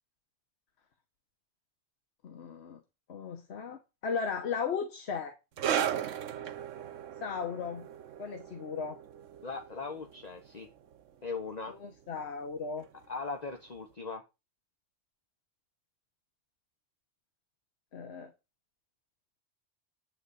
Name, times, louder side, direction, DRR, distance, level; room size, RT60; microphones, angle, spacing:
voice 1, 2.2-2.8 3.1-5.4 7.2-7.9 8.2-9.0 11.7-12.9 17.9-18.3, left 6 dB, 60° left, 1.2 m, -36 dB
sound 1, 5.6-12.6 12.8-13.1 13.8-13.9, right 9 dB, 80° right, 1.1 m, -37 dB
voice 2, 9.4-10.7 11.2-11.8 13.1-14.2, left 4 dB, 35° left, 1.0 m, -39 dB
9.1 x 3.8 x 6.8 m
omnidirectional pair, 1.3 m